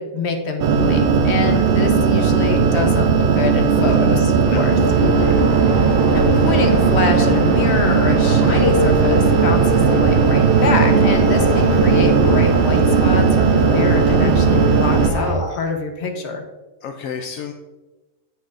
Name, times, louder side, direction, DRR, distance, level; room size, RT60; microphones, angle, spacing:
voice 1, 0.0-5.3 6.1-16.4, left 4 dB, 55° left, 4 dB, 1.3 m, -25 dB
sound 1, 0.6-15.1, right 5 dB, 55° right, 0.6 m, -16 dB
sound 2, 4.8-15.4, right 1 dB, 75° right, 2.2 m, -23 dB
sound 3, 10.7-11.8 12.2-12.8 13.7-14.3 15.1-15.6, equal, 15° left, 1.7 m, -36 dB
voice 2, 16.8-17.5, left 7 dB, 75° left, 5 dB, 1.0 m, -31 dB
9.7 x 8.2 x 2.6 m, 1.1 s
omnidirectional pair, 1.4 m